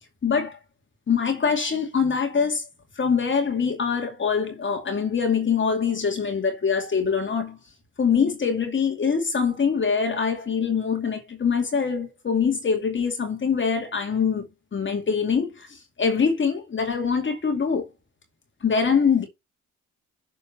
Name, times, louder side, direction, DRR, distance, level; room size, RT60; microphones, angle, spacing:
voice 1, 0.2-0.6 1.1-2.6 3.0-7.6 8.0-14.5 14.7-17.9 18.6-19.2, left 6 dB, 35° left, 2.4 m, -24 dB
6.8 x 4.2 x 6.6 m
cardioid pair, 80°, 32 cm